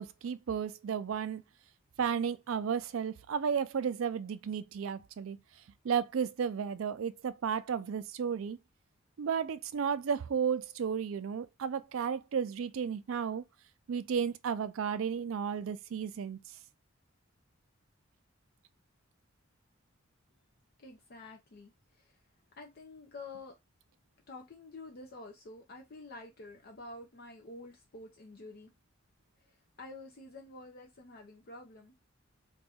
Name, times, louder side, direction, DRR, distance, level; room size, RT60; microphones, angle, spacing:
voice 1, 0.0-1.4 2.0-5.4 5.8-8.6 9.2-13.4 13.9-16.4, right 7 dB, 85° right, 0.4 m, -33 dB
voice 2, 20.8-22.2 22.5-23.5 24.3-28.7 29.4-31.9, left 2 dB, 50° left, 0.5 m, -49 dB
2.6 x 2.4 x 4.1 m
head